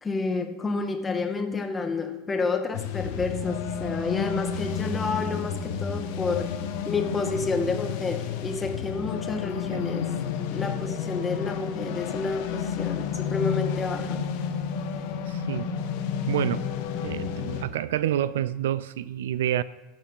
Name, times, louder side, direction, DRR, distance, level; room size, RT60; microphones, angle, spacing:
voice 1, 0.0-6.5 6.8-10.1 10.5-14.2, left 4 dB, 20° left, 1.4 m, -30 dB
sound 1, 2.7-17.6, left 7 dB, 65° left, 1.1 m, -31 dB
voice 2, 15.3-15.8 16.3-16.7 17.0-19.6, right 11 dB, 75° right, 0.3 m, -28 dB
13.0 x 4.6 x 5.5 m
hypercardioid pair, 85°, 0 cm